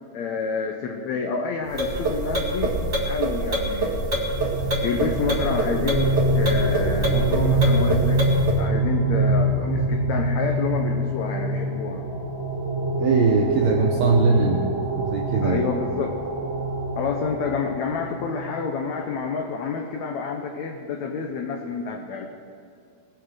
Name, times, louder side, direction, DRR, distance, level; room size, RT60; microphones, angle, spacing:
voice 1, 0.1-2.8 3.0-3.9 4.8-8.3 8.6-12.0 15.4-16.1 16.9-22.3, left 5 dB, 90° left, 3 dB, 1.5 m, -28 dB
sound 1, 1.7-8.6, right 1 dB, 50° right, 0.8 m, -25 dB
sound 2, 3.9-18.6, right 1 dB, 20° left, 3.5 m, -25 dB
voice 2, 13.0-15.6, right 4 dB, 75° right, 1 dB, 1.6 m, -21 dB
20.0 x 7.2 x 6.3 m, 2.5 s
omnidirectional pair, 4.4 m